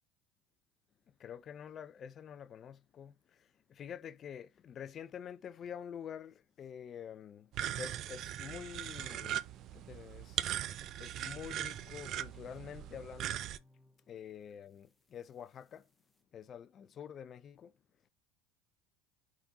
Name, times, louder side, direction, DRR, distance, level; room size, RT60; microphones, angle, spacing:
voice 1, 1.2-9.4 9.7-10.4 11.0-13.4 14.1-15.9 16.3-17.7, left 8 dB, 40° left, 0.4 m, -47 dB
sound 1, 7.5-13.6, right 11 dB, 50° right, 0.4 m, -40 dB
sound 2, 11.2-16.2, left 1 dB, 5° left, 0.8 m, -64 dB
4.1 x 3.6 x 2.8 m
hypercardioid pair, 85°, 0 cm